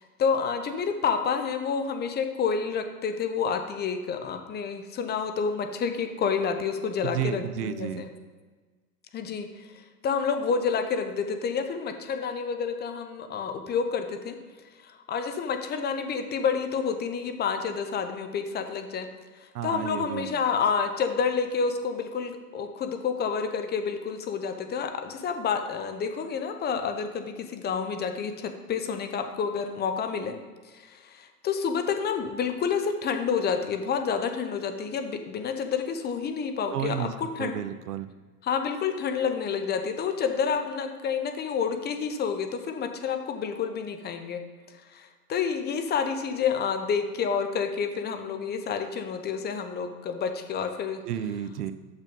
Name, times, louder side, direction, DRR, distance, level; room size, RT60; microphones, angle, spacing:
voice 1, 0.0-8.1 9.1-9.7 10.0-14.4 14.8-19.1 19.4-30.3 30.7-37.6 38.4-44.4 44.9-51.0, left 6 dB, 20° left, 6 dB, 0.7 m, -29 dB
voice 2, 7.0-8.0 19.5-20.3 36.7-37.1 37.4-38.1 51.0-51.7, right 10 dB, 80° right, 13 dB, 0.7 m, -31 dB
6.8 x 5.7 x 5.3 m, 1.4 s
hypercardioid pair, 110°, 46 cm